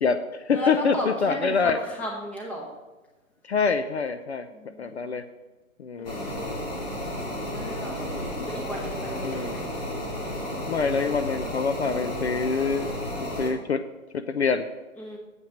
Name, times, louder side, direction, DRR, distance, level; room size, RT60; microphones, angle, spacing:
voice 1, 0.0-1.8 3.4-4.5 4.8-5.2 5.8-6.6 9.2-9.5 10.7-12.9 13.4-13.8 14.3-14.6, left 5 dB, 50° left, 10 dB, 0.6 m, -25 dB
voice 2, 0.5-2.7 4.5-5.2 5.9-6.4 7.5-9.7 15.0-15.2, equal, 5° left, -2 dB, 1.0 m, -35 dB
sound 1, 6.0-13.5, equal, 30° left, 2.3 m, -32 dB
7.6 x 5.6 x 7.4 m, 1.1 s
figure-of-eight pair, 135°, 42 cm